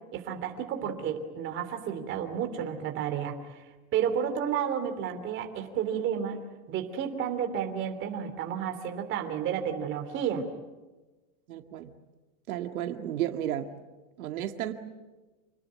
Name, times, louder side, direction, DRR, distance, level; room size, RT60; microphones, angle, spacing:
voice 1, 0.1-3.6 3.9-6.4 6.7-10.4, right 8 dB, 25° right, 5 dB, 3.0 m, -31 dB
voice 2, 11.5-11.9 12.5-13.7 14.2-14.7, right 11 dB, 80° right, 6 dB, 2.1 m, -33 dB
28.0 x 20.5 x 9.5 m, 1.2 s
supercardioid pair, 170°, 42 cm